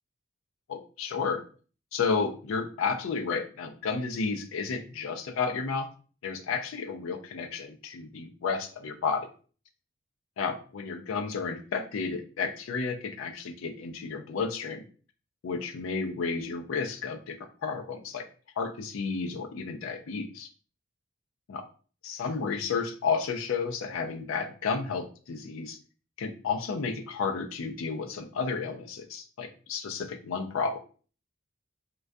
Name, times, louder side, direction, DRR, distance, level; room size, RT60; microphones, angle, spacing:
voice 1, 0.7-1.4 1.9-5.9 6.2-9.3 10.4-14.8 15.4-18.3 18.6-20.5 21.5-21.6 22.0-25.8 26.2-30.8, left 5 dB, 80° left, 6 dB, 0.4 m, -32 dB
2.2 x 2.2 x 2.5 m, 0.39 s
head